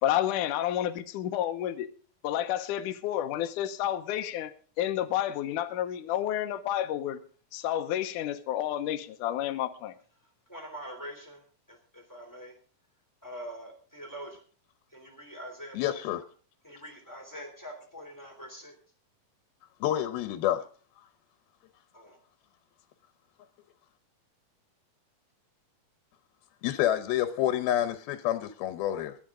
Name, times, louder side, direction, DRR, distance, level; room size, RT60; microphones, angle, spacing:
voice 1, 0.0-1.9 2.2-7.2 7.5-9.9, left 12 dB, 70° left, 7 dB, 2.2 m, -30 dB
voice 2, 10.5-11.4 11.7-12.5 13.2-14.4 14.9-16.0 16.6-18.7 21.9-22.2, equal, 5° left, 3 dB, 2.5 m, -44 dB
voice 3, 15.7-16.2 19.8-20.6 26.6-29.2, left 12 dB, 90° left, 10 dB, 2.7 m, -28 dB
22.0 x 8.6 x 3.7 m, 0.41 s
omnidirectional pair, 4.2 m